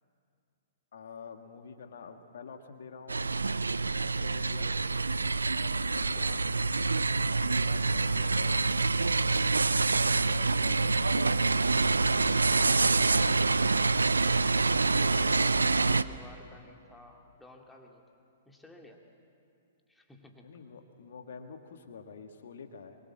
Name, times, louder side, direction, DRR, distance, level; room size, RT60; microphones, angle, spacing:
voice 1, 0.9-3.4 4.0-4.7 7.4-8.7 9.2-11.3 12.0-13.4 20.4-23.0, left 5 dB, 60° left, 6 dB, 1.8 m, -47 dB
sound 1, 3.1-16.0, right 3 dB, 80° right, 0.5 m, -26 dB
voice 2, 5.9-6.5 14.8-18.0 18.5-19.0 19.9-20.6 21.0-21.2, left 2 dB, 5° left, 1 dB, 2.4 m, -53 dB
25.0 x 22.0 x 7.5 m, 2.5 s
figure-of-eight pair, 110°, 0 cm